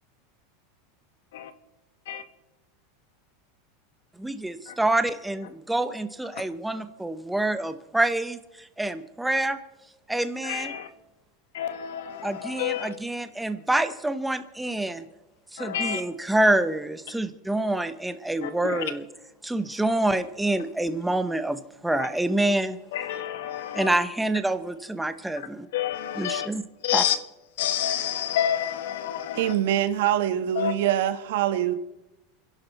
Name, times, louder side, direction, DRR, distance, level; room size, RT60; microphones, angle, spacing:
voice 1, 4.2-9.6 10.1-10.7 12.2-15.1 15.5-19.0 19.4-22.8 23.7-25.7 26.1-26.6 26.9-27.1, right 1 dB, 5° right, 0.7 m, -27 dB
voice 2, 10.4-10.9 11.5-12.9 15.6-16.0 18.4-18.8 22.9-24.0 25.7-26.5 26.8-27.2 27.6-29.5 30.6-30.7, left 10 dB, 80° left, 1.6 m, -29 dB
voice 3, 29.3-31.7, right 11 dB, 65° right, 1.4 m, -24 dB
29.5 x 11.0 x 4.1 m
supercardioid pair, 170°, 0 cm